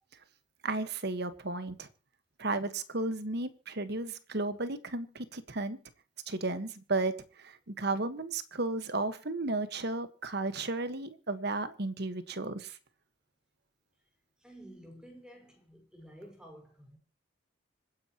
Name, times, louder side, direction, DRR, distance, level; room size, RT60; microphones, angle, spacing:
voice 1, 0.6-1.9 2.4-5.8 6.3-12.8, right 2 dB, 50° right, 1.5 m, -34 dB
voice 2, 14.4-17.0, equal, 5° right, 5.1 m, -51 dB
26.0 x 10.0 x 3.0 m
head